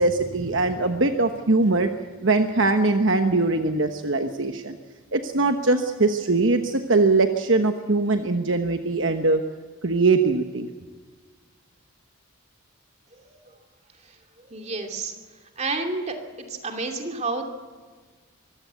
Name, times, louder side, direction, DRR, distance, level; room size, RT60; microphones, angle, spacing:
voice 1, 0.0-1.9 2.2-4.7 5.1-9.4 9.8-10.7, right 3 dB, 60° right, 6 dB, 1.2 m, -21 dB
voice 2, 14.4-15.1 15.6-16.2 16.5-17.5, right 3 dB, 30° right, 4 dB, 2.6 m, -30 dB
24.0 x 16.0 x 8.2 m, 1.5 s
head